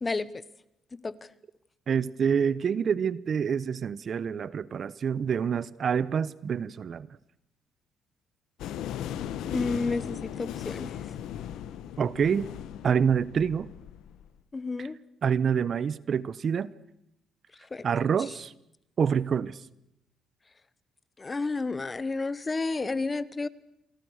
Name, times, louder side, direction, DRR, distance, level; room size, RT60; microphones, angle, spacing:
voice 1, 1.9-7.1 12.0-12.4 12.8-13.7 15.2-16.7 17.8-18.5 19.0-19.6, right 7 dB, 55° right, 19 dB, 0.9 m, -27 dB
sound 1, 8.6-14.2, left 10 dB, 85° left, 1.5 m, -37 dB
voice 2, 9.5-11.0 14.5-14.9 17.7-17.9 21.2-23.5, left 3 dB, 25° left, 18 dB, 1.2 m, -31 dB
28.5 x 24.0 x 6.5 m, 0.81 s
cardioid pair, 90°, 0 cm